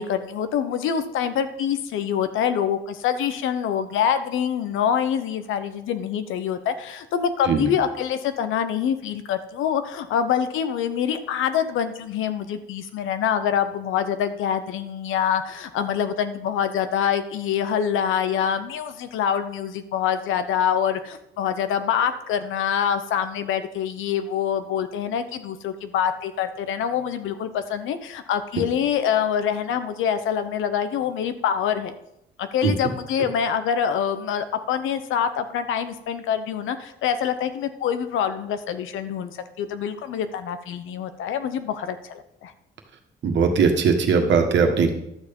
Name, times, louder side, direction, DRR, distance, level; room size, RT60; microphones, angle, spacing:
voice 1, 0.0-31.9 32.4-42.5, left 8 dB, 85° left, 10 dB, 0.9 m, -25 dB
voice 2, 43.2-44.9, right 5 dB, 65° right, 4 dB, 1.6 m, -19 dB
11.5 x 6.8 x 5.4 m, 0.82 s
cardioid pair, 90°, 20 cm